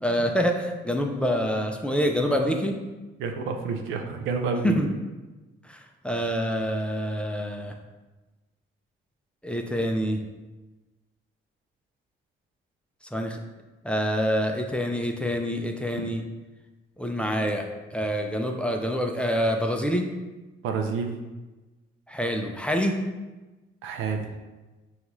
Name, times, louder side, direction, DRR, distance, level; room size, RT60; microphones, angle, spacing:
voice 1, 0.0-2.7 4.6-4.9 5.6-7.7 9.4-10.2 13.1-13.4 13.8-16.2 17.0-20.1 22.1-23.0, equal, 5° left, 3 dB, 0.4 m, -26 dB
voice 2, 3.2-4.8 20.6-21.2 23.8-24.3, right 5 dB, 90° right, 4 dB, 0.5 m, -29 dB
5.1 x 2.4 x 3.0 m, 1.2 s
cardioid pair, 90°, 20 cm